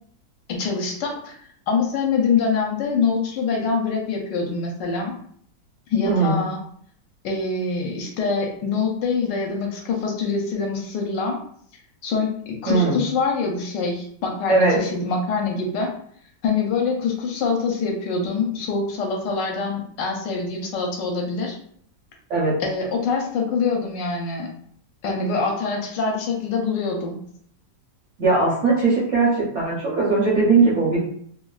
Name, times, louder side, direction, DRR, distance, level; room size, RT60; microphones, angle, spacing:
voice 1, 0.5-1.4 1.7-5.1 5.9-6.6 7.2-11.4 12.0-15.9 16.4-21.6 22.6-24.5 25.0-27.2, left 4 dB, 80° left, 1 dB, 1.2 m, -24 dB
voice 2, 6.0-6.4 12.7-13.0 14.5-14.8 22.3-22.5 28.2-31.0, right 3 dB, 55° right, -6 dB, 0.8 m, -19 dB
3.1 x 2.2 x 2.3 m, 0.63 s
omnidirectional pair, 2.0 m